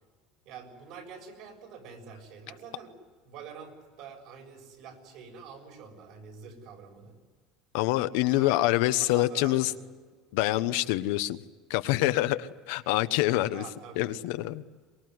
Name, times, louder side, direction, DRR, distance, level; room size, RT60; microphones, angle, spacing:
voice 1, 0.5-3.0 3.2-7.2 8.3-8.6 8.9-9.8 13.5-14.1, right 6 dB, 60° right, 7.2 m, -46 dB
voice 2, 7.7-9.7 10.3-11.4 11.7-13.6 14.0-14.6, left 16 dB, 80° left, 1.1 m, -26 dB
24.0 x 21.0 x 9.6 m
cardioid pair, 160°, 0 cm